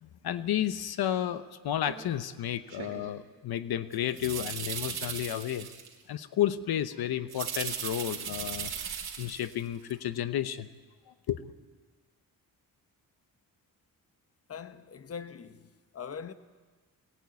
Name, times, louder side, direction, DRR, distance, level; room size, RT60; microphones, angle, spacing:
voice 1, 0.0-5.7 6.1-10.7 11.1-11.4, left 11 dB, 85° left, 0.9 m, -32 dB
sound 1, 1.9-2.0 2.7-3.1 3.9-5.9 7.3-9.6 9.9-10.0, right 7 dB, 90° right, 3.2 m, -37 dB
voice 2, 14.5-16.3, left 6 dB, 40° left, 1.1 m, -42 dB
21.5 x 18.0 x 9.5 m
wide cardioid pair, 125°, 36 cm